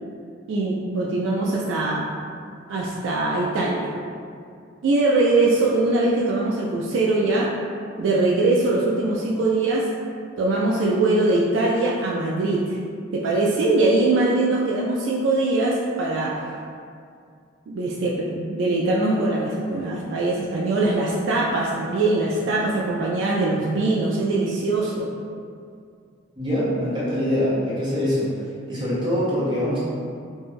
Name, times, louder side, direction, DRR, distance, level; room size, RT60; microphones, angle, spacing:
voice 1, 0.5-2.0 2.7-3.9 4.8-7.5 8.0-9.9 10.4-12.8 13.1-16.4 17.7-25.1, right 2 dB, 65° right, -4 dB, 0.3 m, -22 dB
voice 2, 26.4-28.3 28.7-29.8, equal, 25° right, -10 dB, 0.8 m, -23 dB
2.4 x 2.2 x 3.1 m, 2.3 s
head